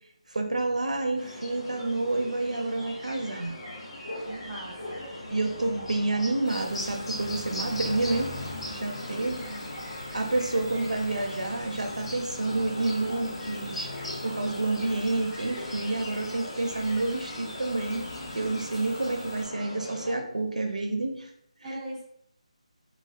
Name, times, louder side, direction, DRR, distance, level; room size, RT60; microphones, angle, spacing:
voice 1, 0.3-3.6 5.3-8.3 8.7-9.4 10.1-18.1 18.3-21.3, right 2 dB, 85° right, 3 dB, 0.4 m, -29 dB
sound 1, 1.2-20.1, left 1 dB, 50° left, 0.8 m, -39 dB
voice 2, 4.2-5.0 9.0-9.7 21.6-22.0, right 1 dB, 15° right, -7 dB, 1.0 m, -40 dB
sound 2, 6.4-19.4, left 1 dB, 20° left, 0.4 m, -44 dB
2.4 x 2.2 x 2.3 m, 0.71 s
figure-of-eight pair, 160°, 4 cm